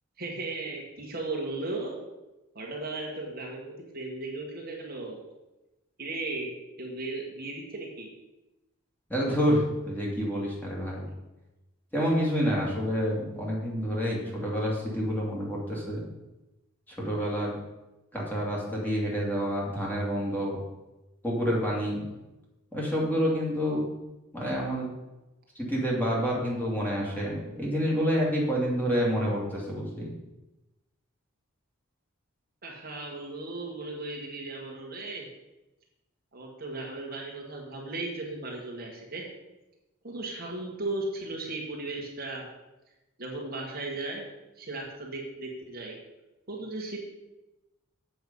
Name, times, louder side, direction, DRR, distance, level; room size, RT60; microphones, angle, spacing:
voice 1, 0.2-2.0 2.5-5.2 6.0-6.5 6.8-8.1 32.6-35.3 36.3-39.2 40.0-42.5 43.2-44.2 44.6-45.9 46.5-47.0, right 2 dB, 45° right, -1 dB, 1.7 m, -36 dB
voice 2, 9.1-11.1 11.9-16.0 17.0-17.6 18.1-20.6 21.2-22.1 22.7-23.8 24.3-24.9 25.6-30.1, equal, 10° left, -5 dB, 2.4 m, -28 dB
7.9 x 6.9 x 5.4 m, 1.0 s
head